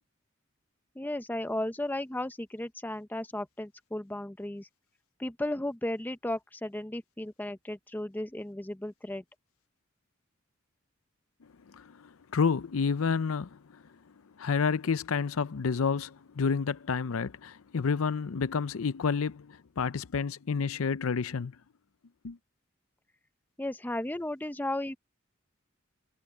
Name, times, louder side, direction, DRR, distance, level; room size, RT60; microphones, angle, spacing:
voice 1, 1.0-4.7 5.2-9.2 23.6-25.0, left 1 dB, 10° left, 0.6 m, -35 dB
voice 2, 12.3-13.5 14.4-21.5 22.2-22.4, left 5 dB, 75° left, 0.6 m, -29 dB
head